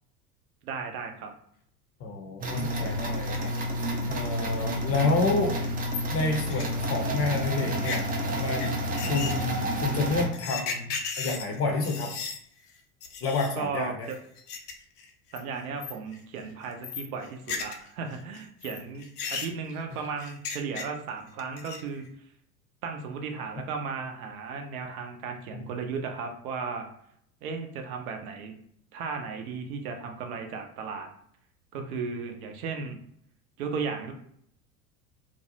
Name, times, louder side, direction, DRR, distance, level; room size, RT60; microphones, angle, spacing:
voice 1, 0.6-1.3 13.6-13.9 15.3-22.0 22.8-26.9 27.4-28.6 28.9-31.1 31.7-33.0 33.6-34.1, right 5 dB, 65° right, 4 dB, 0.7 m, -35 dB
voice 2, 2.0-3.5 4.1-5.6 6.1-8.0 8.3-12.1 13.2-14.1 25.5-25.6, left 3 dB, 30° left, 2 dB, 0.6 m, -29 dB
sound 1, 2.4-10.2, equal, 20° right, 0.5 m, -30 dB
sound 2, 3.2-3.6 4.0-4.1 4.6-4.7 4.9-5.0 5.3-5.4 5.6-7.2 7.7-8.0 8.6-8.7 9.0-12.4 12.7-12.8 13.0-13.6 14.1-14.7 15.0-15.4 15.8-16.2 16.5-17.9 18.1-21.1 21.4-22.0, left 5 dB, 80° left, 0.6 m, -36 dB
2.6 x 2.0 x 2.7 m, 0.67 s
figure-of-eight pair, 80°, 47 cm